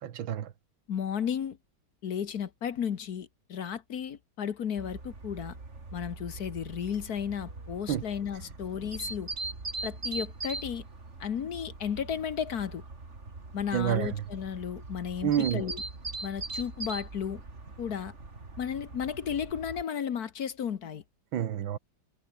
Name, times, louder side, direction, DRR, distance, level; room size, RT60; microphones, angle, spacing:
voice 1, 0.0-0.5 7.9-8.0 13.7-14.2 15.2-15.7 21.3-21.8, right 10 dB, 85° right, 2.0 m, -29 dB
voice 2, 0.9-1.6 2.0-5.6 5.9-9.3 9.8-10.8 11.2-12.8 13.5-15.8 16.2-17.4 17.8-18.1 18.6-21.0, left 8 dB, 55° left, 1.5 m, -34 dB
sound 1, 4.8-19.8, right 3 dB, 35° right, 3.4 m, -41 dB
omnidirectional pair, 2.1 m